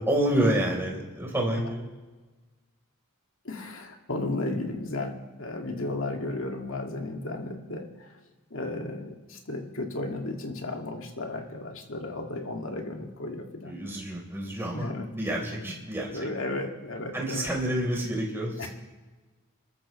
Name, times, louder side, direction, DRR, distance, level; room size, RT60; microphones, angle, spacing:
voice 1, 0.0-1.8 13.6-16.2 17.1-18.7, right 1 dB, 10° right, -1 dB, 4.0 m, -28 dB
voice 2, 3.4-8.1 8.5-13.7 14.7-15.1 15.5-15.7 16.1-17.5 18.6-18.7, left 2 dB, 65° left, 2 dB, 2.2 m, -34 dB
29.0 x 14.0 x 3.2 m, 1.3 s
head